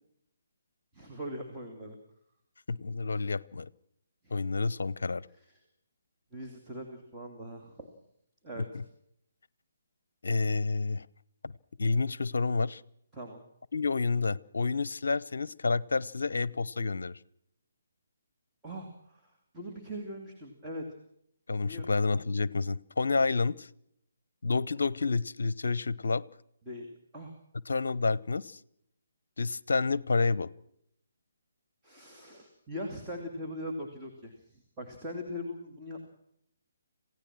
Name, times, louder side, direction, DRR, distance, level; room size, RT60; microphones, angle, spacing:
voice 1, 0.9-2.0 4.2-4.3 5.3-5.6 6.3-7.9 8.4-8.8 13.1-13.4 18.6-20.8 21.6-22.0 26.7-26.9 27.1-27.3 31.8-36.1, equal, 10° right, 2.8 m, -41 dB
voice 2, 2.7-3.7 4.3-5.3 8.7-8.8 10.2-11.1 11.4-11.5 11.8-12.8 13.7-17.2 21.5-23.7 24.4-26.2 27.7-28.6 29.4-30.5, left 4 dB, 60° left, 0.7 m, -29 dB
27.0 x 16.5 x 6.1 m
figure-of-eight pair, 140°, 0 cm